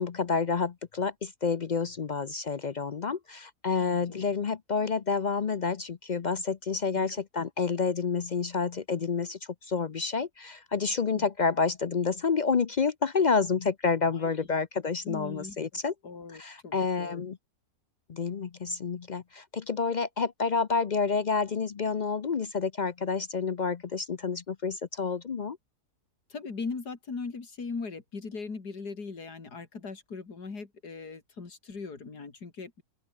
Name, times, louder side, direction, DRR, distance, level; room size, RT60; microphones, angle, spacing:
voice 1, 0.0-9.4 9.7-15.9 16.4-17.4 18.1-25.6, left 5 dB, 55° left, 0.5 m, -29 dB
voice 2, 3.8-4.2 7.0-7.2 11.1-11.3 14.1-14.3 15.0-15.6 16.0-17.2 26.3-32.8, left 4 dB, 85° left, 3.6 m, -39 dB
open air
omnidirectional pair, 1.7 m